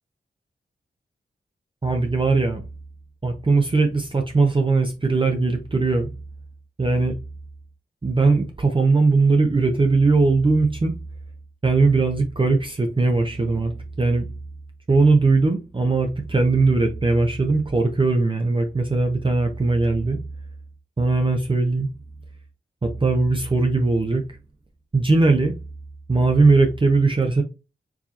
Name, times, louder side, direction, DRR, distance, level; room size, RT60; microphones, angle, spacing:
voice 1, 1.8-2.6 3.2-6.1 6.8-7.1 8.0-10.9 11.6-13.7 14.0-14.3 14.9-20.2 21.0-21.9 22.8-24.3 24.9-25.5 26.1-27.4, right 3 dB, 25° right, 0.6 m, -19 dB
4.7 x 2.7 x 2.4 m
cardioid pair, 55°, 19 cm